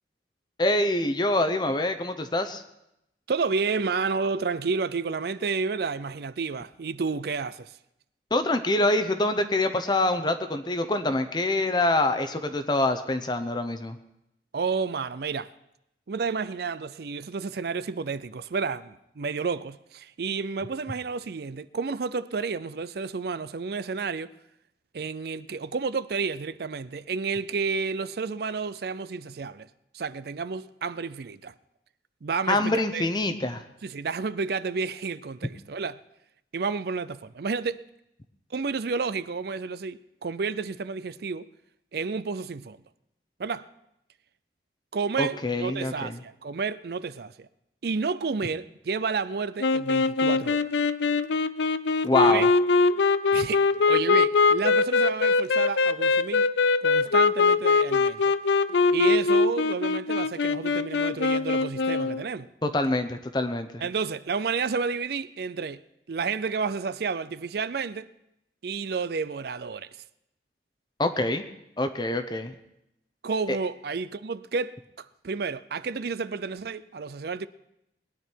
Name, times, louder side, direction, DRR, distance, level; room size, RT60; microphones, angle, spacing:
voice 1, 0.6-2.6 8.3-14.0 32.5-33.6 45.2-46.2 52.0-52.5 62.6-63.8 71.0-71.4 71.8-72.5 73.5-73.6, left 2 dB, 25° left, 0.7 m, -25 dB
voice 2, 3.3-7.7 14.5-15.5 16.1-24.3 24.9-29.7 29.9-31.5 32.2-33.1 33.8-36.0 36.5-37.9 38.5-41.4 41.9-42.8 43.4-43.7 44.9-47.5 47.8-50.7 52.2-52.5 53.3-56.5 56.8-58.3 58.9-62.5 63.8-65.8 66.1-68.1 68.6-69.9 73.2-77.5, right 4 dB, 60° right, 0.5 m, -31 dB
sound 1, 49.6-62.2, left 4 dB, 75° left, 0.5 m, -22 dB
20.5 x 10.0 x 4.6 m
head